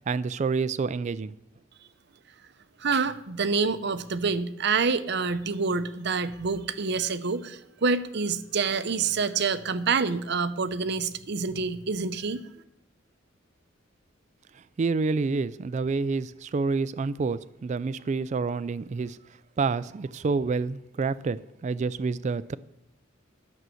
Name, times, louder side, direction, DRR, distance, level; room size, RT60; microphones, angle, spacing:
voice 1, 0.1-1.3 14.8-19.2 19.6-21.4 21.6-22.6, right 4 dB, 40° right, 16 dB, 0.3 m, -28 dB
voice 2, 2.8-12.4, right 4 dB, 60° right, 11 dB, 0.7 m, -27 dB
11.0 x 6.3 x 7.7 m, 0.80 s
head